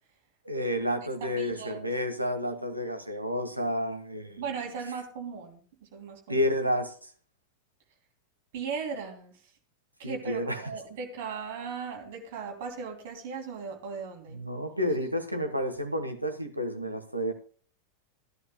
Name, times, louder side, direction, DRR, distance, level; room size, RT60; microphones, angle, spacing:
voice 1, 0.4-4.4 6.3-6.9 10.0-10.6 14.3-17.3, equal, 85° right, 1.4 m, -30 dB
voice 2, 1.2-1.9 4.4-6.4 8.5-9.4 10.0-14.4, right 5 dB, 50° right, 3.0 m, -38 dB
16.0 x 11.5 x 2.2 m
figure-of-eight pair, 90°, 0 cm